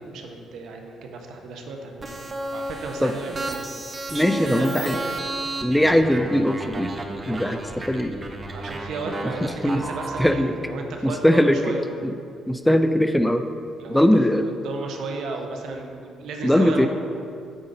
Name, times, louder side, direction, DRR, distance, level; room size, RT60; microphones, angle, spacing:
voice 1, 0.0-3.6 4.4-5.2 8.5-11.9 13.8-14.1 14.4-16.9, right 3 dB, 80° right, 3 dB, 0.9 m, -34 dB
sound 1, 2.0-10.3, right 2 dB, 30° right, 0.7 m, -32 dB
voice 2, 4.1-5.0 5.6-6.9 7.3-8.1 9.6-9.8 10.2-10.5 11.0-11.6 12.0-12.1 12.5-13.4 13.9-14.5 16.4-16.9, equal, 5° left, 8 dB, 0.4 m, -20 dB
8.8 x 3.8 x 5.5 m, 2.4 s
cardioid pair, 90°, 0 cm